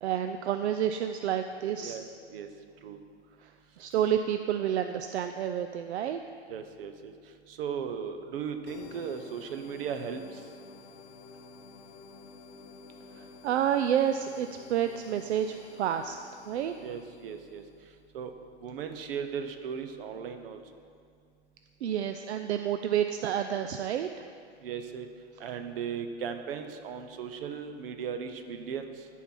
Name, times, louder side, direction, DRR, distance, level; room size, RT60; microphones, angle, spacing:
voice 1, 0.0-2.0 3.4-3.5 3.8-6.2 13.2-16.2 16.5-16.7 21.8-24.1, right 9 dB, 75° right, 8 dB, 0.5 m, -29 dB
voice 2, 1.8-2.5 2.8-3.0 6.5-10.5 16.8-17.6 18.1-18.3 18.6-20.6 24.6-25.1 25.4-29.1, right 7 dB, 55° right, 8 dB, 0.9 m, -37 dB
sound 1, 8.7-18.0, left 4 dB, 25° left, 0.7 m, -51 dB
13.0 x 4.7 x 5.5 m, 2.2 s
hypercardioid pair, 145°, 34 cm